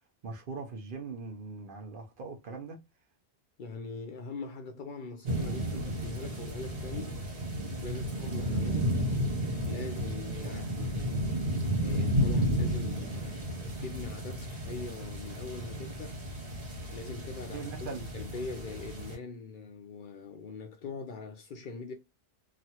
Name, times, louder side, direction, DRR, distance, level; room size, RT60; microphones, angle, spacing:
voice 1, 0.2-2.8 10.4-10.8 17.5-18.0, right 4 dB, 55° right, 0.9 m, -41 dB
voice 2, 3.6-7.2 7.8-9.0 9.7-11.3 11.8-16.2 16.9-21.9, left 4 dB, 60° left, 0.6 m, -42 dB
sound 1, 5.2-19.2, equal, 80° right, 1.6 m, -32 dB
3.0 x 2.4 x 2.8 m
omnidirectional pair, 1.1 m